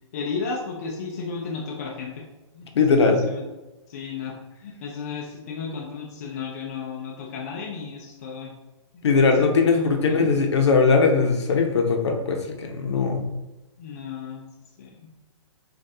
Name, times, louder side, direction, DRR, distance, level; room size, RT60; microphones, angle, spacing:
voice 1, 0.1-2.3 2.5-3.5 3.9-4.4 4.6-8.5 8.9-10.2 13.8-14.4 14.8-15.1, left 5 dB, 30° left, -1 dB, 0.5 m, -33 dB
voice 2, 2.8-3.2 9.0-13.3, left 4 dB, 60° left, 3 dB, 0.9 m, -20 dB
7.3 x 2.5 x 2.7 m, 1.1 s
hypercardioid pair, 170°, 16 cm